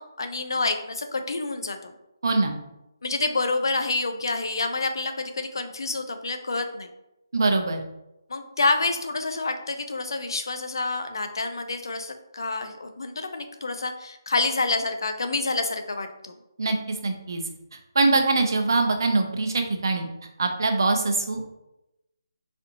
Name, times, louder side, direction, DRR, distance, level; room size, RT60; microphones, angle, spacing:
voice 1, 0.0-1.9 3.0-6.9 8.3-16.3, left 3 dB, 75° left, 7 dB, 0.5 m, -28 dB
voice 2, 2.2-2.6 7.3-7.8 16.6-17.4 18.0-20.1 20.4-21.6, right 3 dB, 65° right, 5 dB, 0.6 m, -23 dB
4.2 x 2.6 x 2.7 m, 0.90 s
hypercardioid pair, 160°, 2 cm